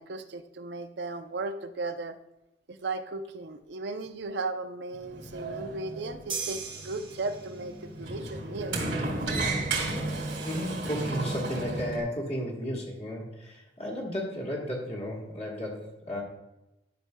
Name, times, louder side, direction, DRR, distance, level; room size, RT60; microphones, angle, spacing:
voice 1, 0.0-2.2 2.7-8.8, right 3 dB, 65° right, 8 dB, 0.5 m, -36 dB
Sliding door, 5.0-12.0, right 2 dB, 80° right, 2.3 m, -33 dB
sound 1, 6.3-7.9, right 5 dB, 25° right, 0.7 m, -37 dB
voice 2, 10.4-16.2, equal, 35° left, -3 dB, 1.4 m, -34 dB
11.0 x 6.0 x 2.2 m, 0.93 s
head